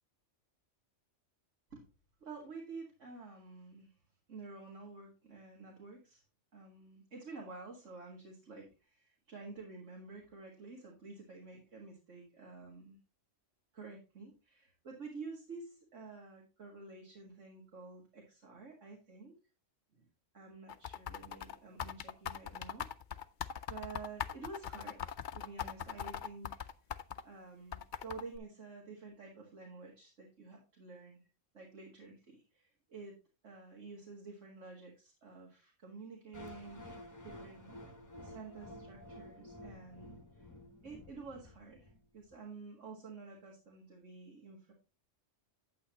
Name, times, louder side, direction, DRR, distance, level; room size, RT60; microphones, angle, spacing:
voice 1, 2.2-3.9 4.3-6.2 6.5-13.0 13.7-19.4 20.0-20.1 20.3-22.9 23.7-26.6 27.2-31.2 31.5-33.2 33.4-37.7 38.1-40.5 40.8-44.7, right 4 dB, 80° right, -2 dB, 2.2 m, -50 dB
sound 1, 20.7-27.2 27.7-28.4, left 8 dB, 55° left, 0.6 m, -40 dB
sound 2, 36.3-42.3, left 1 dB, 15° left, 0.9 m, -52 dB
8.7 x 8.6 x 2.9 m, 0.30 s
omnidirectional pair, 1.2 m